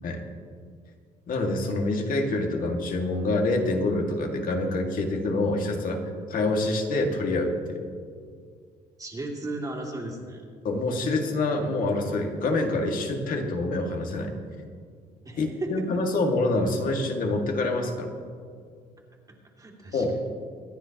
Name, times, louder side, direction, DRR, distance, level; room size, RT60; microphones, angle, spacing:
voice 1, 1.3-6.0 6.3-7.8 10.6-14.3 15.4-18.1 19.9-20.1, left 2 dB, 55° left, 2 dB, 2.1 m, -26 dB
voice 2, 9.0-10.4 15.2-15.8 19.6-20.0, right 2 dB, 20° right, -1 dB, 2.5 m, -35 dB
25.0 x 10.0 x 3.0 m, 2.1 s
cardioid pair, 110°, 17 cm